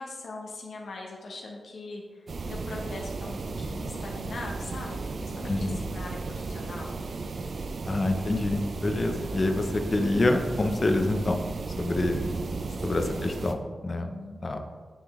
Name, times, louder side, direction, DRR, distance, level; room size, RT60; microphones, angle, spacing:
voice 1, 0.0-7.0 13.1-13.6 13.9-14.4, left 2 dB, 75° left, -1 dB, 1.0 m, -41 dB
sound 1, 2.3-13.5, right 3 dB, 60° right, 0.4 m, -35 dB
voice 2, 7.9-11.4 11.8-12.2 12.8-14.1 14.4-14.6, left 2 dB, 35° left, 6 dB, 0.6 m, -26 dB
9.4 x 3.8 x 3.6 m, 1.5 s
wide cardioid pair, 100°, 0 cm